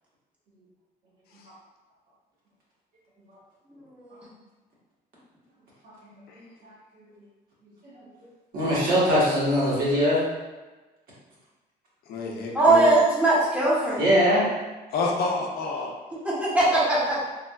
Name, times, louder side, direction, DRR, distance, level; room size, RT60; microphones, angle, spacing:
voice 1, 3.8-4.2 12.5-14.1 16.1-17.2, right 2 dB, 5° right, -7 dB, 0.9 m, -21 dB
voice 2, 6.4-6.7 7.8-8.0 8.5-10.2 14.0-14.5, equal, 60° right, -7 dB, 1.2 m, -22 dB
voice 3, 12.1-12.9 14.9-15.9 16.7-16.8, left 3 dB, 65° left, -1 dB, 0.5 m, -28 dB
3.4 x 2.2 x 2.2 m, 1.2 s
cardioid pair, 110°, 17 cm